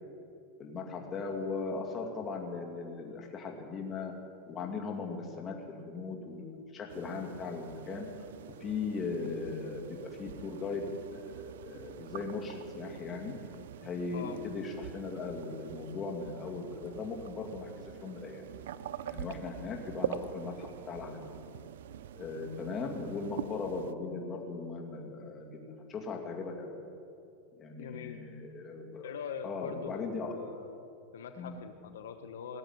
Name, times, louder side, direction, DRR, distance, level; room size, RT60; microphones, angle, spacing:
voice 1, 0.6-4.1 4.5-8.1 8.6-10.8 11.1-13.3 13.8-17.7 18.0-18.4 19.1-21.3 22.1-26.8 27.6-29.1 29.4-30.3 31.4-31.6, left 4 dB, 25° left, 1 dB, 2.4 m, -38 dB
sound 1, 6.9-23.9, right 10 dB, 80° right, 0.5 m, -44 dB
voice 2, 27.8-28.3 29.0-29.9 30.2-30.8 31.1-32.6, left 7 dB, 90° left, 7 dB, 1.0 m, -43 dB
18.5 x 7.8 x 9.6 m, 2.6 s
supercardioid pair, 140°, 0 cm